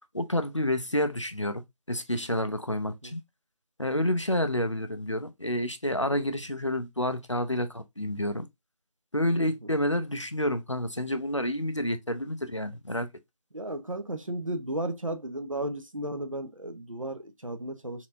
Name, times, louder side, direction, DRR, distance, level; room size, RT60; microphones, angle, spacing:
voice 1, 0.1-1.6 1.9-3.2 3.8-8.5 9.1-13.1, left 1 dB, 50° left, 0.5 m, -29 dB
voice 2, 2.8-3.1 9.6-9.7 13.5-18.1, right 1 dB, 55° right, 0.7 m, -34 dB
4.3 x 2.8 x 2.5 m
figure-of-eight pair, 175°, 20 cm